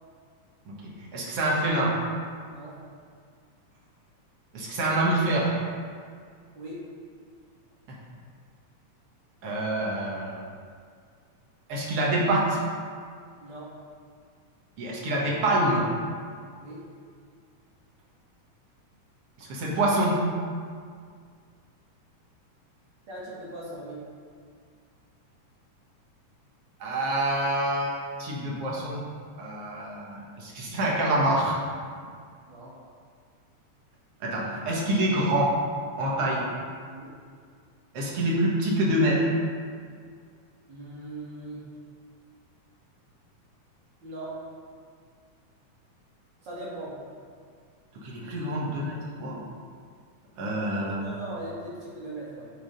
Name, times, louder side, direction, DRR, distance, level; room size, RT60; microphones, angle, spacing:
voice 1, 0.7-1.9 4.5-5.6 7.9-8.0 9.4-10.4 11.7-12.6 14.8-15.8 19.4-20.2 26.8-27.9 28.2-29.0 29.4-31.6 34.2-35.5 36.0-36.4 37.9-39.2 48.0-49.4 50.4-51.0, right 1 dB, 55° right, -4 dB, 2.2 m, -26 dB
voice 2, 23.1-24.0 32.5-32.7 36.9-37.1 40.7-41.7 44.0-44.4 46.4-47.0 50.4-52.5, right 1 dB, 40° right, -8 dB, 2.5 m, -40 dB
9.5 x 3.9 x 5.2 m, 2.1 s
omnidirectional pair, 3.5 m